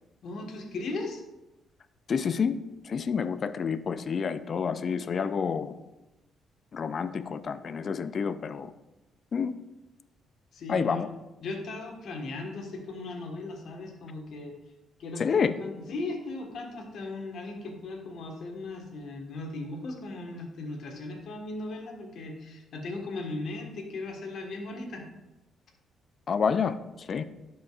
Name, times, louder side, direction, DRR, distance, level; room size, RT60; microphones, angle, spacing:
voice 1, 0.2-1.2 10.5-11.0 11.4-14.5 15.0-25.1, left 2 dB, 70° left, 2 dB, 1.4 m, -37 dB
voice 2, 2.1-2.6 2.8-5.7 6.7-8.7 9.3-9.5 10.7-11.1 15.2-15.6 26.3-27.2, left 6 dB, 50° left, 13 dB, 0.4 m, -28 dB
11.5 x 5.1 x 2.4 m, 1.0 s
cardioid pair, 90°, 0 cm